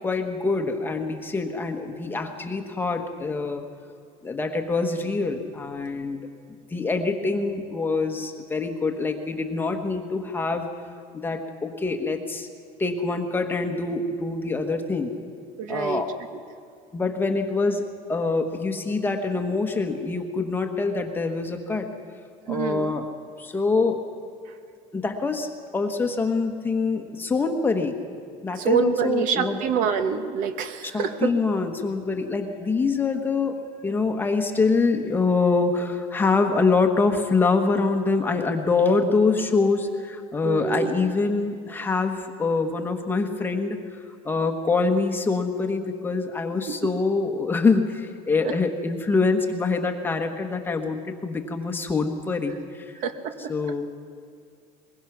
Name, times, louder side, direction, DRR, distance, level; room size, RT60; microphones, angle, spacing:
voice 1, 0.0-3.6 4.2-6.2 6.7-10.7 11.1-12.5 12.8-15.1 15.7-16.1 16.9-21.9 22.5-23.1 23.4-24.0 24.9-28.0 28.4-29.6 30.9-33.6 33.8-52.9 53.5-53.9, left 4 dB, 15° left, 4 dB, 1.2 m, -25 dB
voice 2, 15.6-16.0 22.5-22.9 24.5-24.6 28.6-31.3 40.4-41.1 46.7-46.8 48.4-48.5 53.0-53.5, right 7 dB, 55° right, 9 dB, 1.3 m, -26 dB
21.5 x 21.5 x 6.0 m, 2.3 s
cardioid pair, 170°, 16 cm